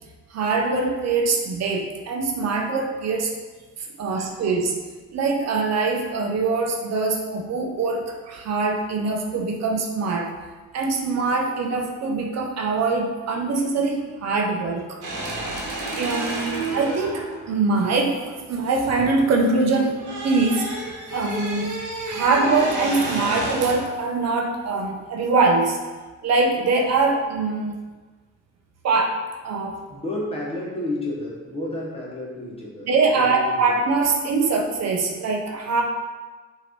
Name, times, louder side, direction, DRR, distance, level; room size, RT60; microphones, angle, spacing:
voice 1, 0.3-3.3 4.0-4.7 5.1-10.3 10.7-15.0 15.9-18.2 18.5-20.0 20.2-20.7 21.1-21.7 22.0-25.8 26.2-27.7 28.8-29.8 32.8-35.8, right 3 dB, 60° right, 2 dB, 0.7 m, -23 dB
sound 1, 15.0-19.3 19.6-24.0, right 2 dB, 80° right, 1.1 m, -31 dB
voice 2, 29.9-32.9 33.1-33.8, left 1 dB, 20° left, -4 dB, 1.4 m, -31 dB
5.7 x 2.8 x 3.1 m, 1.3 s
cardioid pair, 90°, 30 cm